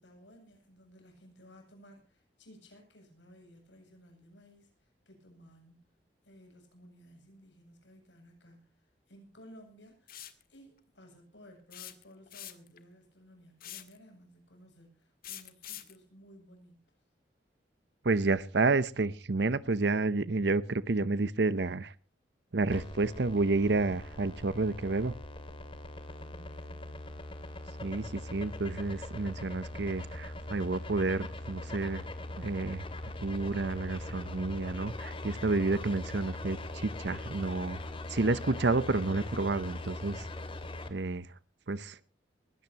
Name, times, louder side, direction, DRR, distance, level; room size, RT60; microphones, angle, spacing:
voice 1, 0.0-5.8 6.2-10.2 10.5-16.8 26.0-27.1, equal, 85° left, 4 dB, 8.0 m, -57 dB
sound 1, 10.1-10.4 11.7-12.8 13.6-14.0 15.2-16.0, left 12 dB, 55° left, 1.8 m, -44 dB
voice 2, 18.0-21.9 22.5-25.1 27.8-32.0 32.4-32.8 33.2-37.8 38.1-40.3 40.9-41.3 41.7-42.0, right 3 dB, 65° right, 16 dB, 0.7 m, -30 dB
sound 2, 22.7-40.9, left 2 dB, 30° left, 2.3 m, -41 dB
21.0 x 17.5 x 2.9 m, 0.37 s
head